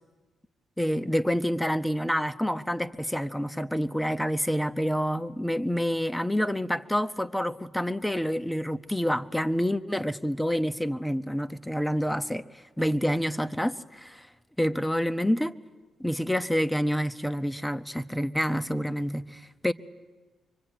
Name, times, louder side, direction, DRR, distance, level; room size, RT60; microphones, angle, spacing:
voice 1, 0.8-12.4 12.8-14.3 14.6-15.5 16.0-19.7, equal, 5° left, 11 dB, 1.2 m, -28 dB
25.5 x 24.0 x 9.3 m, 1.3 s
supercardioid pair, 55°, 0 cm